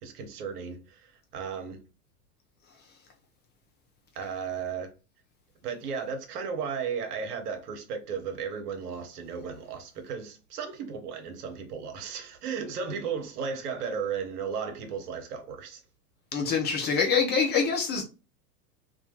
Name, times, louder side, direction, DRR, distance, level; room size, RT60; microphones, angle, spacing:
voice 1, 0.0-1.8 4.1-4.9 5.6-15.8, right 6 dB, 75° right, 0.8 m, -35 dB
voice 2, 16.3-18.0, left 5 dB, 25° left, 0.4 m, -25 dB
2.2 x 2.1 x 2.9 m
hypercardioid pair, 95°, 47 cm